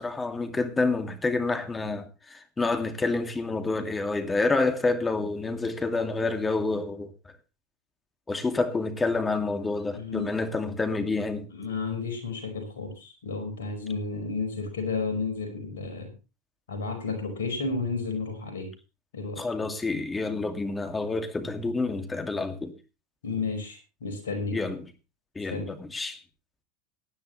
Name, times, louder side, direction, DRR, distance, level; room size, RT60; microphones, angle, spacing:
voice 1, 0.0-7.1 8.3-11.5 19.4-22.7 24.5-24.8 25.4-26.2, left 3 dB, 15° left, 2.3 m, -28 dB
voice 2, 9.9-10.3 11.5-16.1 16.7-18.7 19.1-19.4 23.2-24.6 25.5-25.7, left 4 dB, 80° left, 5.0 m, -32 dB
18.5 x 10.5 x 3.2 m
hypercardioid pair, 85°, 0 cm